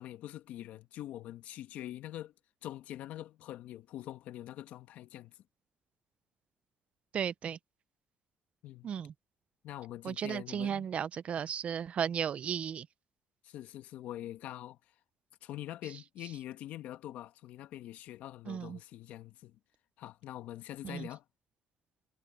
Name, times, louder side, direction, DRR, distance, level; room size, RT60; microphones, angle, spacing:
voice 1, 0.0-2.3 2.6-5.4 8.6-8.9 9.6-10.9 13.4-14.8 15.4-19.6 20.0-21.2, left 13 dB, 75° left, 1.3 m, -44 dB
voice 2, 7.1-7.6 8.8-9.1 10.0-12.9 18.5-18.8 20.8-21.1, right 8 dB, 50° right, 0.7 m, -35 dB
supercardioid pair, 75°, 3 cm